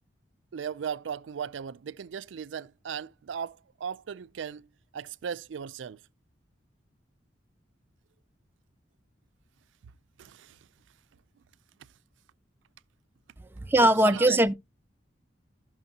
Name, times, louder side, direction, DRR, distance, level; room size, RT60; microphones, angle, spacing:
voice 1, 0.5-6.0 10.2-10.6 13.8-14.4, right 7 dB, 90° right, 0.4 m, -37 dB
voice 2, 13.4-14.5, right 1 dB, 10° right, 0.4 m, -21 dB
13.0 x 6.1 x 2.8 m
head